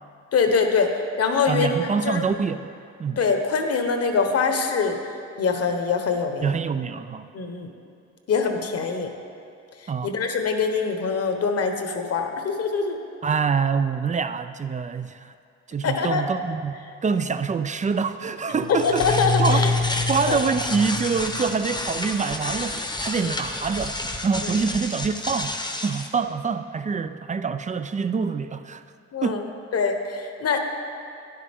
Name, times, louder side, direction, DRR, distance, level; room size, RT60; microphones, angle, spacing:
voice 1, 0.3-0.9 1.2-1.8 2.0-2.2 3.2-5.0 5.4-6.5 7.3-7.7 8.3-9.1 10.0-13.0 15.8-16.2 18.7-19.7 20.3-20.4 24.4-24.5 29.1-29.4 29.7-30.6, left 5 dB, 55° left, 5 dB, 1.2 m, -23 dB
voice 2, 1.5-2.7 3.0-3.2 6.4-7.3 9.9-10.1 13.2-15.3 15.7-19.7 20.1-28.8 29.2-29.4, right 5 dB, 25° right, 11 dB, 0.4 m, -26 dB
sound 1, 18.5-26.1, left 2 dB, 15° left, 0.9 m, -28 dB
12.5 x 10.0 x 3.7 m, 2.5 s
cardioid pair, 90°, 30 cm